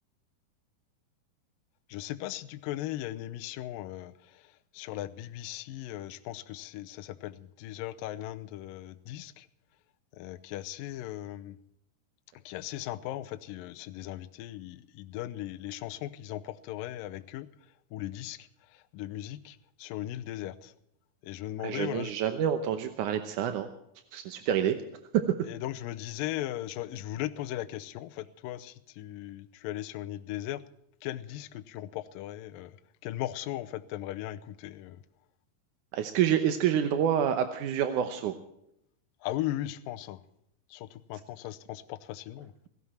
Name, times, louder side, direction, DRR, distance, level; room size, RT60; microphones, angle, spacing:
voice 1, 1.9-4.1 4.7-9.5 10.2-11.6 12.5-17.5 17.9-18.5 18.9-20.7 21.2-22.2 25.4-30.6 31.0-32.7 33.0-35.0 39.2-40.2 40.7-42.5, left 14 dB, 75° left, 9 dB, 2.2 m, -38 dB
voice 2, 21.6-23.7 24.1-24.8 25.1-25.2 35.9-38.3, right 9 dB, 70° right, 8 dB, 2.0 m, -27 dB
18.0 x 16.5 x 4.4 m, 0.76 s
omnidirectional pair, 4.6 m